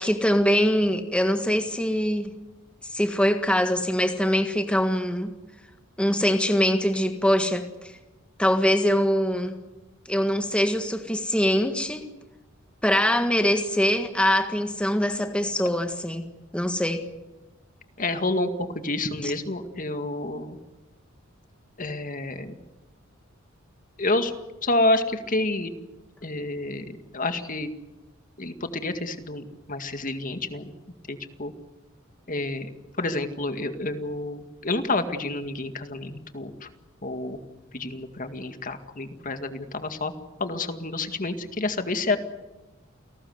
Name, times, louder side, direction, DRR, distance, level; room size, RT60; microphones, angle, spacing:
voice 1, 0.0-2.3 2.9-5.3 6.0-7.9 8.4-9.6 10.1-12.0 12.8-16.2 16.5-17.0 19.2-19.3, equal, 5° left, 6 dB, 1.6 m, -23 dB
voice 2, 18.0-20.6 21.8-22.6 24.0-24.3 24.6-25.7 26.2-27.7 28.4-30.7 31.1-31.5 32.3-36.7 37.0-37.4 37.7-40.1 40.4-42.2, left 2 dB, 40° left, 8 dB, 2.0 m, -29 dB
29.5 x 19.0 x 8.0 m, 1.1 s
head